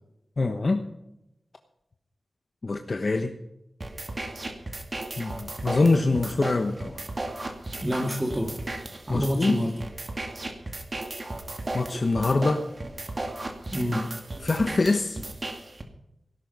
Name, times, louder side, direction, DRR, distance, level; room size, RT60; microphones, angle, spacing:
voice 1, 0.4-0.8 2.6-3.3 5.2-7.0 9.1-9.6 11.7-12.7 14.4-15.2, left 3 dB, 45° left, 6 dB, 1.1 m, -24 dB
sound 1, 3.8-15.8, right 2 dB, 35° right, 2.2 m, -35 dB
voice 2, 7.8-8.6 9.1-9.8 13.7-14.2, equal, 20° right, 2 dB, 2.0 m, -27 dB
18.0 x 11.0 x 5.4 m, 0.86 s
wide cardioid pair, 105°, 0 cm